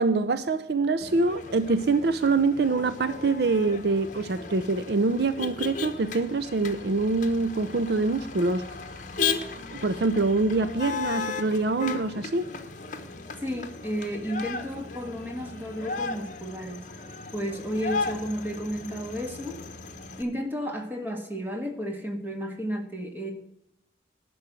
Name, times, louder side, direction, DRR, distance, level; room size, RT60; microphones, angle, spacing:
voice 1, 0.0-8.8 9.7-12.5, right 3 dB, 60° right, 0.5 m, -25 dB
Motor vehicle (road), 1.0-20.2, left 4 dB, 45° left, 1.0 m, -36 dB
voice 2, 13.4-16.9 17.3-19.6 20.2-23.3, equal, 10° right, 1.5 m, -32 dB
10.5 x 6.2 x 7.9 m
head